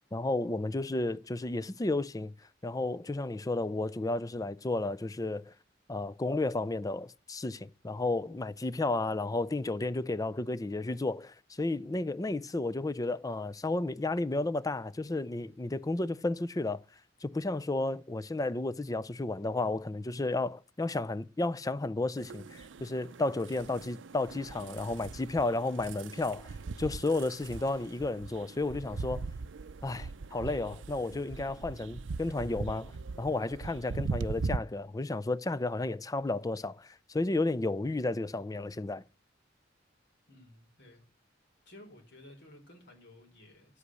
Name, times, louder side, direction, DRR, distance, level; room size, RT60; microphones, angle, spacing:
voice 1, 0.1-2.3 2.6-5.5 5.9-16.8 17.2-29.3 29.8-32.9 33.2-39.0, left 2 dB, 20° left, 0.5 m, -32 dB
sound 1, 22.2-34.6, right 4 dB, 70° right, 0.5 m, -40 dB
voice 2, 40.3-41.0 41.7-43.8, left 1 dB, 65° left, 4.2 m, -54 dB
9.8 x 8.3 x 6.2 m
head